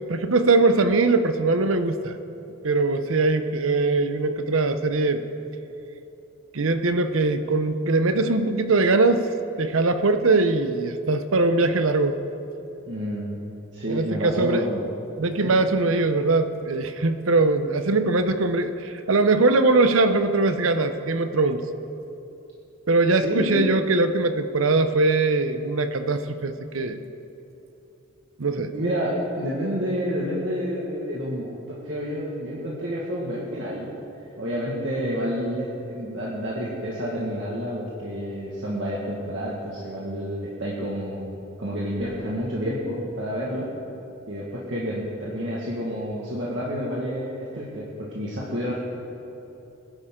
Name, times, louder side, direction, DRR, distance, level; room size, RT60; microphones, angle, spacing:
voice 1, 0.1-2.2 2.6-5.2 6.5-9.3 9.6-12.2 13.9-14.6 15.2-21.6 22.9-27.0 28.4-28.7, right 3 dB, 85° right, 9 dB, 0.8 m, -21 dB
voice 2, 12.9-13.4 13.7-14.9 15.4-15.5 23.2-23.6 28.6-33.9 34.4-43.7 44.3-48.7, equal, 65° right, -6 dB, 1.8 m, -29 dB
21.0 x 11.0 x 3.8 m, 2.9 s
head